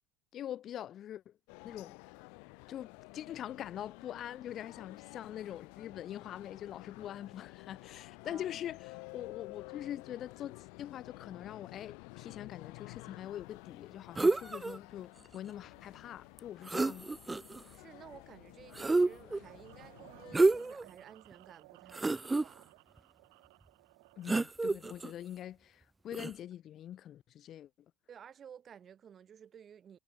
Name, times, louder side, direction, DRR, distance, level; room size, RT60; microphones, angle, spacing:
voice 1, 0.3-1.3 1.6-2.0 2.7-17.2 24.2-27.7, left 11 dB, 30° left, 5.2 m, -44 dB
sound 1, 1.5-20.4, left 40 dB or more, 60° left, 2.3 m, -52 dB
sound 2, 14.2-14.8 16.4-16.5 16.7-17.6 18.7-19.4 20.3-20.8 21.3-21.4 21.9-22.4 24.3-25.1 26.1-26.3, right 3 dB, 10° right, 0.7 m, -29 dB
voice 2, 17.7-22.7 28.1-30.0, right 8 dB, 25° right, 6.8 m, -54 dB
sound 3, 19.4-25.4, right 28 dB, 70° right, 7.8 m, -59 dB
supercardioid pair, 160°, 0 cm